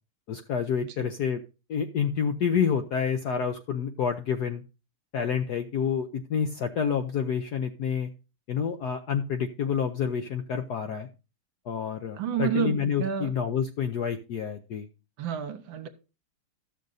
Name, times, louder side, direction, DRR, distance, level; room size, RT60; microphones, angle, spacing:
voice 1, 0.3-1.4 1.7-4.6 5.1-8.1 8.5-11.1 11.7-14.9, left 7 dB, 70° left, 1.0 m, -28 dB
voice 2, 12.2-13.3 15.2-15.9, right 8 dB, 65° right, 1.6 m, -29 dB
13.5 x 6.5 x 3.9 m
omnidirectional pair, 2.4 m